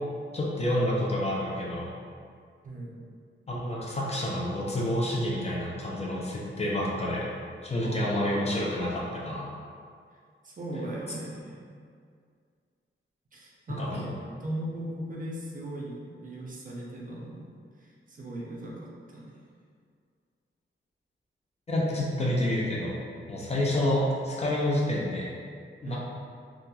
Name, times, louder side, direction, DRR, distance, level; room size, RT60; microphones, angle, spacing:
voice 1, 0.3-1.9 3.5-7.3 7.6-9.5 13.7-14.1 21.7-23.0 23.3-25.3 25.8-26.0, left 1 dB, 30° left, -5 dB, 0.4 m, -28 dB
voice 2, 2.6-3.0 7.8-8.0 10.4-11.7 13.3-14.1 14.4-17.5 17.8-19.3 25.8-26.0, right 1 dB, 40° right, -4 dB, 0.4 m, -38 dB
2.8 x 2.3 x 2.2 m, 2.1 s
wide cardioid pair, 160°, 21 cm